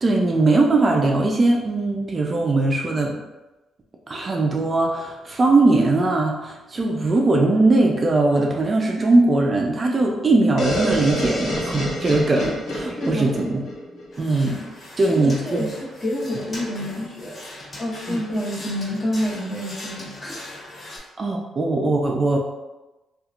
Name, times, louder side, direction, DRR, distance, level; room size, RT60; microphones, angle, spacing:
voice 1, 0.0-3.1 4.1-13.6 14.2-14.6 15.0-15.7 18.1-18.2 21.2-22.4, right 2 dB, 35° right, 0 dB, 0.4 m, -20 dB
sound 1, 10.6-14.3, equal, 65° left, 0.9 m, -27 dB
voice 2, 13.0-13.4 15.0-20.3, equal, 25° left, -4 dB, 0.8 m, -28 dB
sound 2, 14.1-21.0, left 1 dB, 40° left, 1.4 m, -40 dB
2.8 x 2.4 x 2.4 m, 1.0 s
cardioid pair, 90°, 0 cm